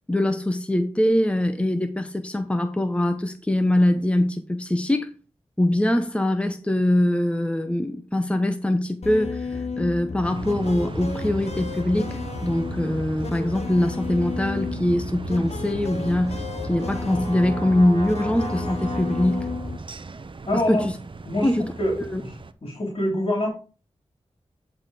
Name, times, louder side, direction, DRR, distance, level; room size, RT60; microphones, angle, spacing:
voice 1, 0.1-5.1 5.6-19.5 20.5-21.0 21.4-21.7 22.0-22.2, left 1 dB, 10° left, 0.8 m, -23 dB
sound 1, 9.0-19.8, left 5 dB, 70° left, 0.8 m, -33 dB
sound 2, 10.2-22.5, right 3 dB, 45° right, 0.8 m, -36 dB
Brass instrument, 15.6-19.9, equal, 35° left, 3.3 m, -37 dB
voice 2, 20.5-20.9 21.2-21.5 21.8-21.9 22.2-22.3 22.6-23.5, left 1 dB, 50° left, 3.2 m, -24 dB
9.6 x 4.1 x 4.9 m
cardioid pair, 50°, 11 cm